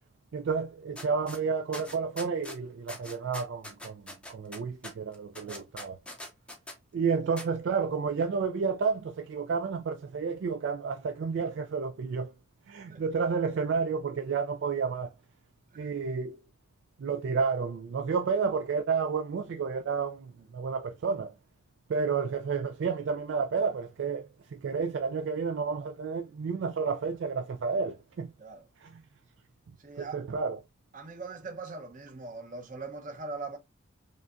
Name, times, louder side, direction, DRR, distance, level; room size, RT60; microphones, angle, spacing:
voice 1, 0.3-6.0 6.9-12.3 12.7-15.1 15.8-16.4 17.0-21.3 21.9-28.3 28.8-29.0 30.0-30.6, right 5 dB, 60° right, 0.3 m, -31 dB
sound 1, 1.0-1.4 1.7-2.6 2.9-6.8 7.4-7.5, left 1 dB, 5° left, 0.5 m, -42 dB
voice 2, 29.8-30.2 30.9-33.6, right 3 dB, 40° right, 0.8 m, -41 dB
5.2 x 2.2 x 2.4 m
head